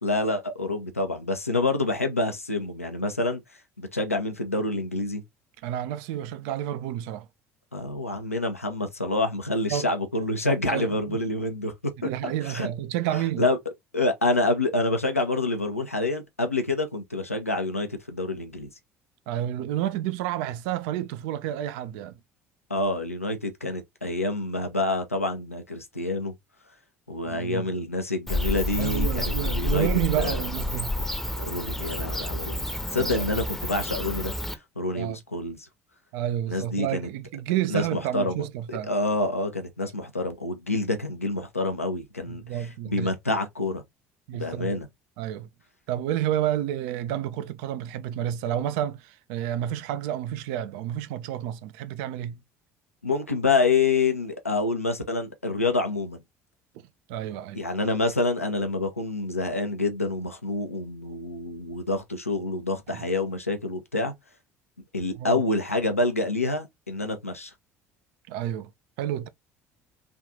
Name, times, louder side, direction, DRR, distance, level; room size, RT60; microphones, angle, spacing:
voice 1, 0.0-3.4 3.8-5.2 7.7-11.7 12.0-12.7 13.4-13.6 13.9-18.7 22.7-26.3 27.1-29.9 30.2-30.4 31.4-34.3 34.8-35.7 36.5-37.1 37.7-43.8 44.3-44.9 53.0-56.2 57.5-64.1 64.9-67.5, left 2 dB, 90° left, 0.6 m, -27 dB
voice 2, 5.6-7.3 9.7-9.9 10.7-11.2 12.0-13.4 19.3-22.2 27.2-27.7 28.8-30.9 33.0-33.3 34.9-35.2 36.1-38.9 42.3-43.1 44.3-44.8 45.2-45.5 45.9-52.4 57.1-57.6 62.9-63.0 65.2-65.4 68.3-68.7 69.0-69.3, right 11 dB, 60° right, 0.4 m, -30 dB
Bird / Cricket, 28.3-34.5, left 1 dB, 5° left, 0.7 m, -29 dB
3.4 x 2.4 x 2.6 m
figure-of-eight pair, 60°, 7 cm